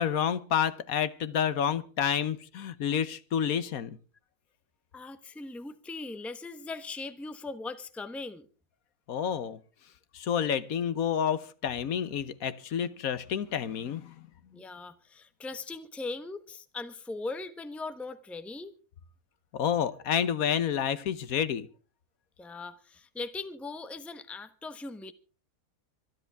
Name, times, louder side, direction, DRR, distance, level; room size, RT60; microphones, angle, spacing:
voice 1, 0.0-4.0 9.1-9.6 10.1-14.1 19.5-21.7, left 8 dB, 70° left, 1.3 m, -29 dB
voice 2, 4.9-8.5 14.5-18.7 22.4-25.1, left 3 dB, ahead, 0.8 m, -39 dB
25.0 x 11.0 x 3.5 m
omnidirectional pair, 1.6 m